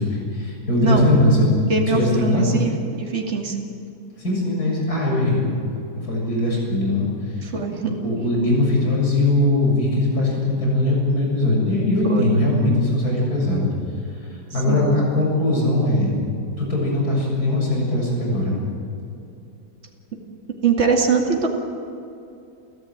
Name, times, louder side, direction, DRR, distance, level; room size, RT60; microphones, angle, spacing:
voice 1, 0.0-1.5 1.9-2.4 4.2-5.4 6.0-7.5 7.8-13.7 14.5-16.1 16.6-18.6, left 1 dB, 65° left, -2 dB, 7.5 m, -20 dB
voice 2, 0.8-1.1 1.7-3.6 7.4-8.0 12.1-12.3 14.7-14.9 20.6-21.5, right 5 dB, 40° right, 1 dB, 2.7 m, -22 dB
29.0 x 15.0 x 9.3 m, 2.6 s
omnidirectional pair, 1.8 m